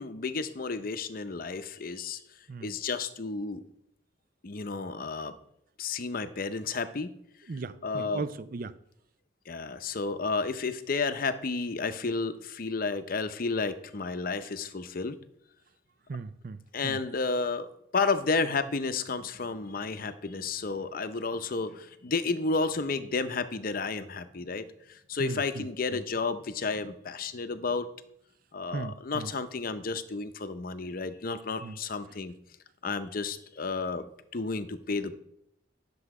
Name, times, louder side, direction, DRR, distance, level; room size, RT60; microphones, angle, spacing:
voice 1, 0.0-2.2 2.6-3.6 4.4-5.4 5.8-7.1 7.8-8.2 9.5-15.2 16.7-27.9 28.5-32.3 32.8-34.1 34.3-35.1, left 4 dB, 50° left, 0.7 m, -32 dB
voice 2, 7.5-8.7 16.1-17.0 25.2-25.6 28.7-29.3 31.6-31.8, right 4 dB, 50° right, 0.5 m, -37 dB
10.0 x 6.9 x 4.8 m
head